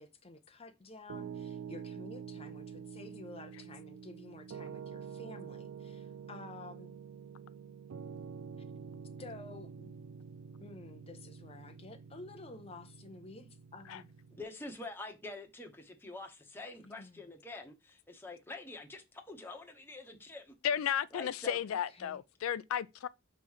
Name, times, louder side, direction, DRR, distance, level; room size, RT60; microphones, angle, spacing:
voice 1, 0.0-7.0 9.2-9.9 10.6-14.1 16.8-17.3 21.7-22.2, left 2 dB, 30° left, 0.6 m, -51 dB
Piano, 1.1-14.4, right 7 dB, 75° right, 0.4 m, -47 dB
voice 2, 14.4-20.5 21.1-21.6, left 2 dB, 10° left, 1.1 m, -46 dB
voice 3, 20.6-23.1, left 9 dB, 90° left, 0.4 m, -33 dB
6.0 x 3.2 x 5.5 m
head